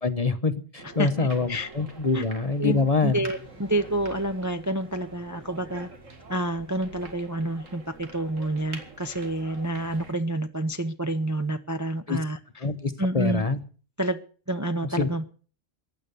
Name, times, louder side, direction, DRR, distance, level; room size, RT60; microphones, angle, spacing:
voice 1, 0.0-3.2 12.1-12.2 12.6-13.6 14.9-15.1, left 3 dB, 35° left, 10 dB, 0.9 m, -25 dB
sound 1, 0.8-10.1, right 3 dB, 90° right, 2.5 m, -46 dB
voice 2, 1.0-1.7 2.1-2.2 2.6-5.9 6.3-12.4 13.0-13.4 14.0-14.2 14.5-15.3, right 1 dB, 20° right, 7 dB, 0.6 m, -28 dB
sound 2, 2.7-7.3, left 1 dB, 5° left, 1.6 m, -53 dB
15.5 x 10.5 x 6.8 m, 0.41 s
omnidirectional pair, 1.3 m